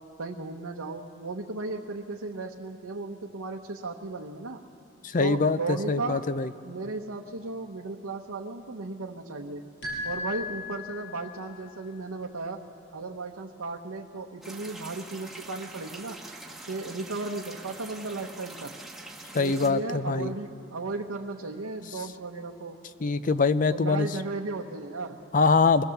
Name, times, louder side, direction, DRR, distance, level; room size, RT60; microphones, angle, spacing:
voice 1, 0.2-4.6 5.2-6.2 6.6-9.6 10.0-12.6 12.9-16.2 16.7-18.7 19.3-22.8 23.7-25.2, right 3 dB, 85° right, 0 dB, 1.0 m, -35 dB
voice 2, 5.0-6.5 19.3-20.3 23.0-24.1 25.3-25.8, left 4 dB, 35° left, 13 dB, 0.5 m, -23 dB
sound 1, 9.8-11.4, left 3 dB, 55° left, 6.1 m, -35 dB
sound 2, 14.4-19.7, right 2 dB, ahead, 1.2 m, -44 dB
23.5 x 17.5 x 7.1 m, 2.6 s
head